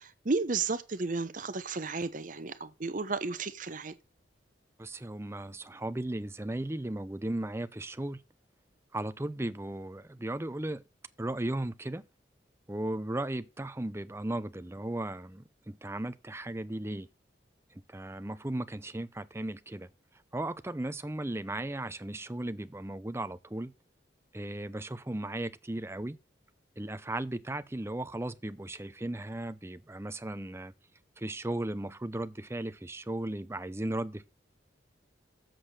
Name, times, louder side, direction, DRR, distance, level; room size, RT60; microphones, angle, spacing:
voice 1, 0.0-3.9, right 4 dB, 45° right, 0.8 m, -33 dB
voice 2, 4.8-8.2 8.9-10.8 11.2-12.1 12.7-17.1 17.7-19.9 20.3-23.7 24.3-26.2 26.8-30.7 31.2-34.3, right 1 dB, 15° right, 0.6 m, -36 dB
7.6 x 6.6 x 6.5 m
head